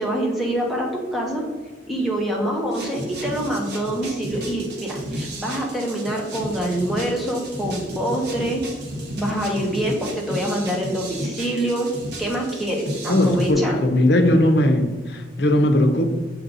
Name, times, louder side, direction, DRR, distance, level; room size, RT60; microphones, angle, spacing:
voice 1, 0.0-1.4 1.9-8.6 9.1-11.9 12.2-13.8, right 1 dB, ahead, -2 dB, 1.0 m, -25 dB
sound 1, 2.7-13.5, right 1 dB, 60° right, 1.4 m, -33 dB
voice 2, 13.1-16.0, left 1 dB, 60° left, 6 dB, 0.7 m, -18 dB
6.4 x 4.5 x 4.0 m, 1.3 s
head